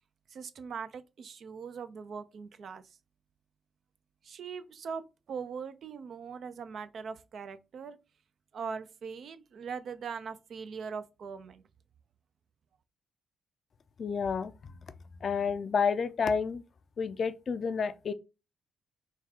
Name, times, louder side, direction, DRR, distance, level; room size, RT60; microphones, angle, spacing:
voice 1, 0.3-3.0 4.2-8.0 8.5-11.6, right 6 dB, 55° right, 0.5 m, -41 dB
voice 2, 14.0-14.5 15.2-16.6 17.0-18.1, left 6 dB, 50° left, 0.4 m, -30 dB
3.7 x 2.3 x 4.4 m
cardioid pair, 90°, 0 cm